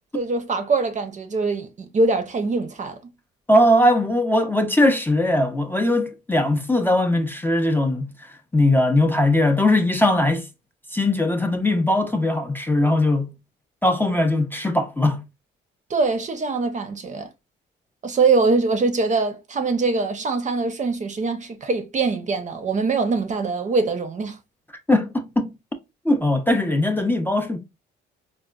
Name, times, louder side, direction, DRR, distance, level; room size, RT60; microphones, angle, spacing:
voice 1, 0.1-3.0 15.9-17.3 18.0-24.4, right 3 dB, 35° right, 0.6 m, -23 dB
voice 2, 3.5-8.1 8.5-10.5 10.9-13.3 13.8-15.2 24.9-25.5 26.0-27.6, left 1 dB, 10° left, 0.5 m, -20 dB
4.0 x 2.1 x 2.3 m
cardioid pair, 75°, 20 cm